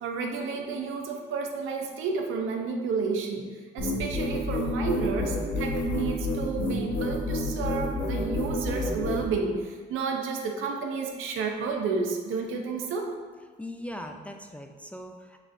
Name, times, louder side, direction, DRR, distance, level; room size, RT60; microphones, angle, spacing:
voice 1, 0.0-3.5 3.7-13.1, right 4 dB, 85° right, 2 dB, 0.7 m, -31 dB
sound 1, 3.8-9.2, left 2 dB, 70° left, 1.1 m, -29 dB
voice 2, 13.6-15.4, left 1 dB, 5° left, 4 dB, 0.3 m, -40 dB
6.1 x 3.2 x 2.5 m, 1.5 s
cardioid pair, 90°, 20 cm